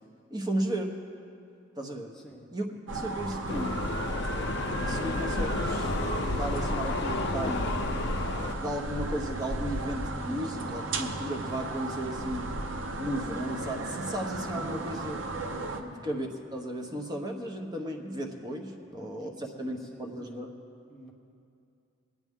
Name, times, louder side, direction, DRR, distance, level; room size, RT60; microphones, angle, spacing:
voice 1, 0.3-0.9 1.8-2.1 2.5-3.8 4.2-12.5 13.0-15.2 16.0-20.5, right 1 dB, 20° right, 2 dB, 1.0 m, -35 dB
voice 2, 2.1-2.5 15.7-16.1 18.8-20.4 20.9-21.1, equal, 5° left, -2 dB, 1.0 m, -50 dB
sound 1, 2.9-15.8, right 2 dB, 75° right, 0.8 m, -34 dB
sound 2, 3.5-8.5, left 3 dB, 60° left, 0.6 m, -32 dB
20.0 x 9.5 x 3.7 m, 2.5 s
head